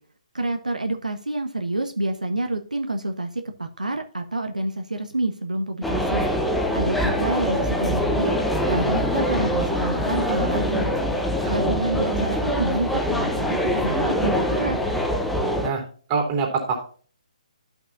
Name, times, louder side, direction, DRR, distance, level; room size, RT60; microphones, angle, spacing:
voice 1, 0.3-6.3 6.7-8.4 8.7-10.9 11.4-14.8, right 2 dB, 85° right, 5 dB, 1.1 m, -28 dB
sound 1, 5.8-15.7, equal, ahead, 0.8 m, -24 dB
voice 2, 16.1-16.8, right 5 dB, 25° right, 2 dB, 3.0 m, -25 dB
13.0 x 6.0 x 2.5 m, 0.43 s
figure-of-eight pair, 140°, 4 cm